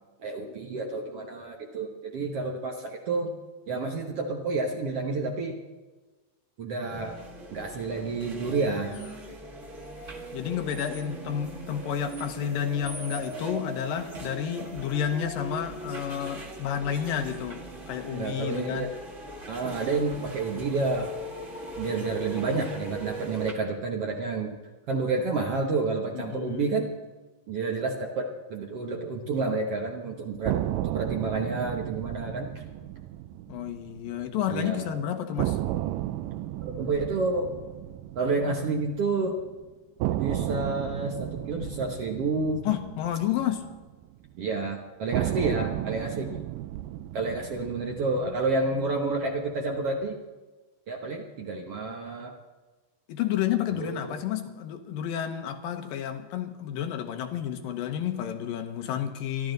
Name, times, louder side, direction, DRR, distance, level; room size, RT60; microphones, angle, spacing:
voice 1, 0.2-3.3 3.7-5.6 6.6-7.2 7.5-9.0 18.1-18.9 19.5-21.2 21.8-24.5 24.9-26.9 27.5-32.5 34.5-35.0 36.6-37.5 38.2-39.4 40.2-42.6 44.4-46.3 47.1-50.2 50.9-52.3 53.7-54.1, right 3 dB, 60° right, 1 dB, 1.7 m, -29 dB
sound 1, 6.9-23.5, right 1 dB, 30° right, 1.4 m, -40 dB
voice 2, 10.3-18.9 26.1-26.7 33.5-35.6 42.7-43.8 53.1-59.5, left 9 dB, 90° left, 6 dB, 2.9 m, -31 dB
sound 2, 30.5-34.5 34.8-34.9 35.4-39.5 40.0-44.4 45.1-49.5, right 14 dB, 85° right, 2.2 m, -34 dB
26.5 x 12.0 x 4.0 m, 1.2 s
omnidirectional pair, 3.9 m